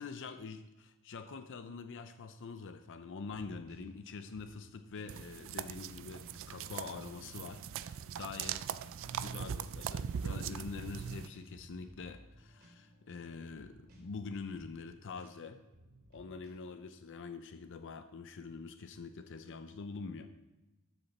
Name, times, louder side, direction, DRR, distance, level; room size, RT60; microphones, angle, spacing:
voice 1, 0.0-8.7 9.1-15.6 16.1-20.3, left 4 dB, 55° left, 9 dB, 0.5 m, -45 dB
sound 1, 3.0-16.5, equal, 45° right, 2.6 m, -60 dB
sound 2, 5.1-11.3, right 8 dB, 60° right, 0.4 m, -40 dB
13.0 x 6.7 x 4.2 m, 1.1 s
head